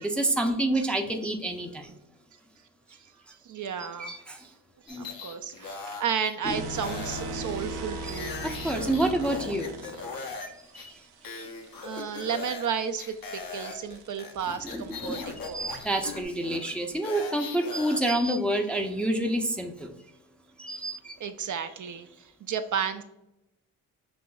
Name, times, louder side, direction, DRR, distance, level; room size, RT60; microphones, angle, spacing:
voice 1, 0.0-1.9 4.0-4.4 4.9-5.1 6.4-6.6 8.0-9.7 13.6-13.7 14.6-19.9 20.6-21.2, right 1 dB, 5° left, 3 dB, 0.5 m, -28 dB
voice 2, 3.4-4.2 4.9-8.4 11.8-15.8 21.2-23.0, right 7 dB, 50° right, 9 dB, 0.4 m, -33 dB
sound 1, 4.9-6.4 6.7-10.5 10.8-10.9 11.2-12.7 13.0-18.2, left 4 dB, 55° left, 0.8 m, -40 dB
sound 2, 6.4-10.3 12.6-16.2, right 2 dB, 70° right, 0.8 m, -39 dB
6.2 x 2.9 x 2.3 m, 0.90 s
supercardioid pair, 45°, 42 cm